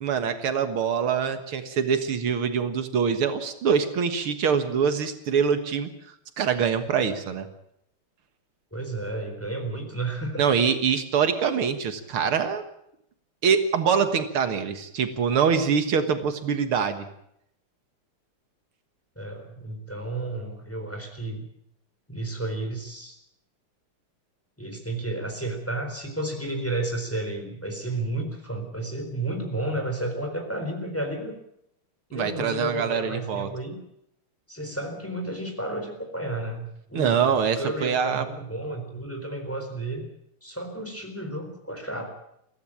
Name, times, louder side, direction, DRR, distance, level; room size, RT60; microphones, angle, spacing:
voice 1, 0.0-5.9 6.4-7.5 10.4-12.6 13.4-17.1 32.1-33.5 36.9-38.2, right 6 dB, 80° right, 9 dB, 2.4 m, -24 dB
voice 2, 8.7-10.4 19.2-21.4 22.1-23.2 24.6-31.4 32.1-33.8 34.5-40.0 40.4-42.1, right 2 dB, 5° left, 4 dB, 4.0 m, -32 dB
22.5 x 16.0 x 8.6 m, 0.77 s
omnidirectional pair, 2.3 m